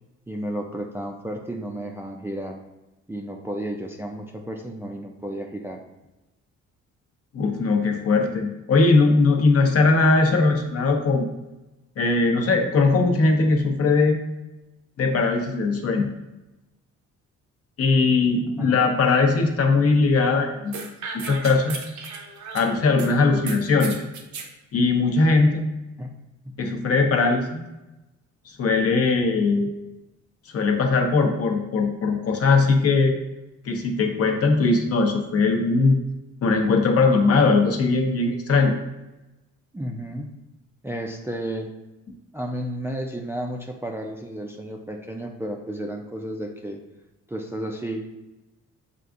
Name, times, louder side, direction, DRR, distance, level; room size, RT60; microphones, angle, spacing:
voice 1, 0.3-2.6 3.1-5.8 18.5-18.9 26.0-26.1 26.5-26.6 39.7-40.3 40.8-41.7 42.3-46.8 47.3-48.0, right 1 dB, 10° right, 1 dB, 0.4 m, -32 dB
voice 2, 7.3-11.3 12.0-14.2 15.0-16.1 17.8-20.9 21.2-21.8 22.5-23.9 24.7-25.6 26.6-27.6 28.6-29.7 30.5-33.2 33.7-36.0 36.4-38.7, left 3 dB, 50° left, 3 dB, 0.7 m, -20 dB
sound 1, 20.7-23.1 23.5-24.5, right 5 dB, 70° right, 0.7 m, -36 dB
6.6 x 2.5 x 2.4 m, 1.0 s
cardioid pair, 90°, 30 cm